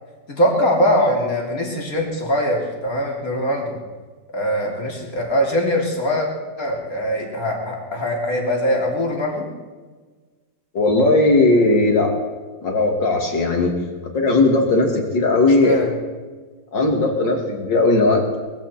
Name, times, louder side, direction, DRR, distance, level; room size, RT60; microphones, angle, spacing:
voice 1, 0.3-3.8 4.3-6.3 6.6-9.5 15.6-15.9, equal, 45° left, 0 dB, 3.5 m, -22 dB
voice 2, 10.7-12.1 12.6-13.7 14.0-15.9 16.7-18.2, left 2 dB, 70° left, 1 dB, 3.3 m, -17 dB
21.0 x 14.5 x 4.4 m, 1.4 s
omnidirectional pair, 2.1 m